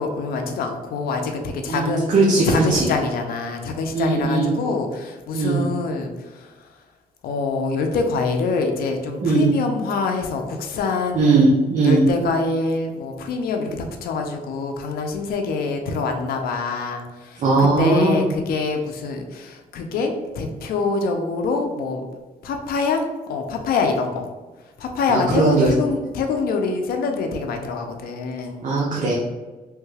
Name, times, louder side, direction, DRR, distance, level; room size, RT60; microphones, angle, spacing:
voice 1, 0.0-2.1 2.5-6.5 7.2-11.5 11.8-22.0 22.4-24.3 24.8-28.6, left 4 dB, 85° left, 4 dB, 0.5 m, -25 dB
voice 2, 1.7-2.9 3.9-4.5 5.3-5.6 9.2-9.5 11.1-12.0 17.4-18.2 25.1-25.7 28.6-29.1, right 3 dB, 55° right, -4 dB, 0.6 m, -19 dB
3.1 x 2.2 x 3.2 m, 1.2 s
cardioid pair, 100°, 15 cm